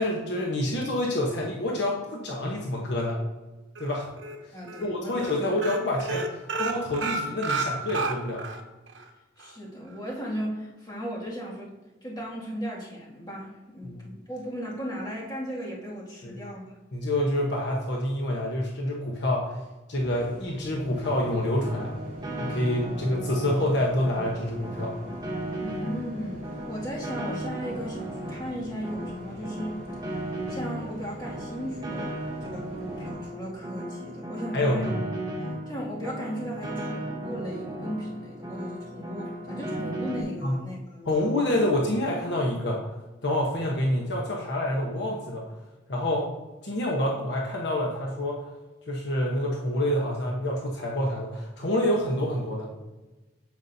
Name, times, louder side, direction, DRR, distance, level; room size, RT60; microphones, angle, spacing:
voice 1, 0.0-3.2 3.8-4.1 4.8-8.4 13.8-14.0 16.2-16.3 16.9-19.6 19.9-21.9 22.4-24.9 34.5-34.9 40.4-40.5 41.0-42.9 43.2-45.4 45.9-46.3 46.6-48.5 48.9-52.7, left 1 dB, 60° left, -2 dB, 1.1 m, -27 dB
sound 1, 3.7-4.3 4.7-4.9 5.1-5.3 5.6-8.6 8.9-9.0 9.4-9.5, right 3 dB, 75° right, 0.9 m, -30 dB
voice 2, 4.5-5.4 9.4-11.7 12.0-16.8 25.6-29.8 30.1-30.2 30.5-32.1 32.4-34.9 35.4-41.4, equal, 20° left, -5 dB, 2.3 m, -36 dB
sound 2, 19.9-33.1, equal, 55° right, 2.7 m, -45 dB
Piano, 21.0-40.2, right 1 dB, 20° right, 1.1 m, -36 dB
9.3 x 7.2 x 2.7 m, 1.1 s
head